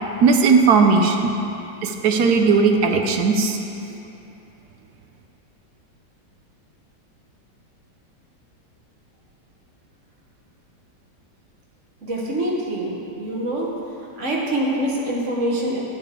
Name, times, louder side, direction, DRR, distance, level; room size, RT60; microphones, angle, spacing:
voice 1, 0.2-1.3 1.8-3.6, right 4 dB, 70° right, 4 dB, 1.2 m, -17 dB
voice 2, 12.0-13.7 14.2-15.8, right 1 dB, 45° right, -3 dB, 1.5 m, -25 dB
11.0 x 8.7 x 3.7 m, 2.8 s
omnidirectional pair, 1.9 m